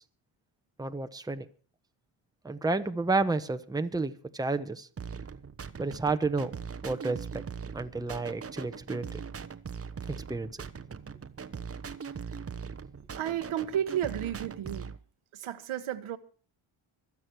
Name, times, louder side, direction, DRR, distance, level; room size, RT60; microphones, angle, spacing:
voice 1, 0.8-1.5 2.4-4.9 5.8-6.5 6.8-7.4 7.7-9.2 10.1-10.6, right 3 dB, 10° right, 1.0 m, -31 dB
sound 1, 5.0-15.0, right 6 dB, 30° right, 0.9 m, -41 dB
voice 2, 13.2-14.9 15.3-16.2, right 10 dB, 85° right, 1.4 m, -33 dB
25.5 x 8.6 x 4.6 m
cardioid pair, 120°, 48 cm